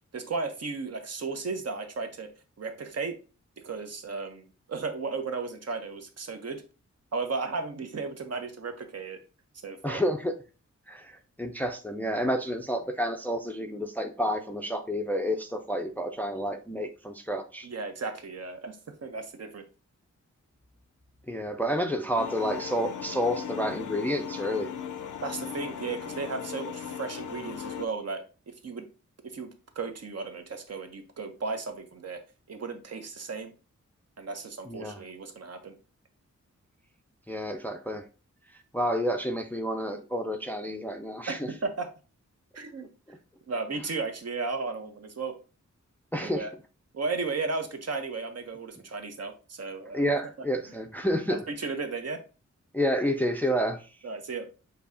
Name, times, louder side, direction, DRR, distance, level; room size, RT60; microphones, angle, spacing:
voice 1, 0.1-2.3 2.6-3.2 3.6-6.6 7.1-9.2 9.6-10.0 17.6-19.6 25.2-28.9 29.2-29.5 29.8-32.2 32.5-33.5 34.2-35.8 41.3-41.9 42.5-42.9 43.5-45.3 46.2-46.5 46.9-50.2 51.3-52.2 54.0-54.5, right 4 dB, 55° right, 6 dB, 0.8 m, -35 dB
voice 2, 9.8-10.3 10.9-17.7 21.3-24.7 34.7-35.0 37.3-38.0 38.7-41.5 46.1-46.5 49.9-51.4 52.7-53.9, equal, 5° left, 6 dB, 0.4 m, -29 dB
sound 1, 22.2-27.8, left 8 dB, 90° left, 0.5 m, -38 dB
6.8 x 2.7 x 2.6 m, 0.33 s
wide cardioid pair, 120°, 30 cm